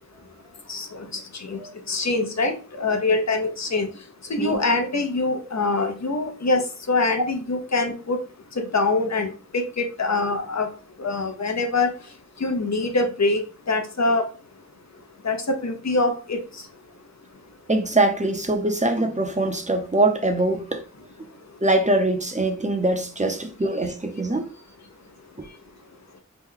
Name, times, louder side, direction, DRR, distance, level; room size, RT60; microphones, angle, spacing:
voice 1, 0.7-1.0 1.4-1.6 1.9-3.9 4.3-6.6 6.9-8.2 8.6-10.7 11.0-11.9 12.4-13.4 13.7-14.2 15.2-16.4, left 3 dB, 65° left, 0.6 m, -24 dB
voice 2, 17.7-20.8 21.6-24.5, right 2 dB, 25° right, 0.5 m, -23 dB
3.0 x 2.1 x 3.7 m
wide cardioid pair, 45°, 29 cm